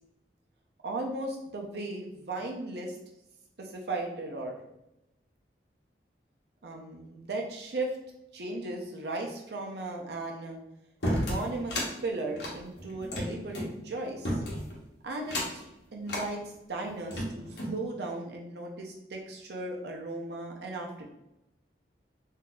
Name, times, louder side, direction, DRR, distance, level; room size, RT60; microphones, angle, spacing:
voice 1, 0.8-3.0 3.6-4.6 6.6-8.0 8.3-10.6 11.1-14.4 15.0-15.6 15.9-16.4 16.7-21.1, right 2 dB, 70° right, 0 dB, 0.6 m, -36 dB
sound 1, 11.0-11.9 12.3-13.7 14.2-14.8 15.2-15.6 16.1-16.3 16.9-17.8, equal, 75° left, 0.9 m, -32 dB
3.8 x 2.7 x 2.3 m, 0.89 s
head